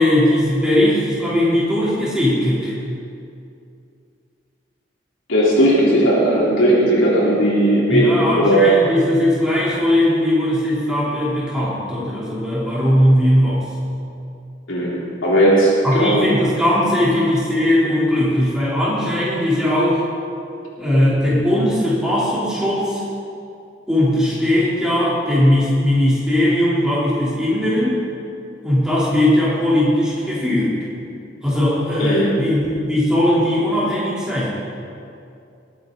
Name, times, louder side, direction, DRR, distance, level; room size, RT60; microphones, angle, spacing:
voice 1, 0.0-2.7 7.9-13.7 15.8-20.0 20.8-23.0 23.9-28.0 28.6-30.7 31.4-34.6, left 1 dB, 5° right, -8 dB, 3.4 m, -18 dB
voice 2, 5.3-8.7 14.7-16.3 32.0-32.4, right 1 dB, 85° left, -6 dB, 3.8 m, -16 dB
20.5 x 9.1 x 3.9 m, 2.5 s
head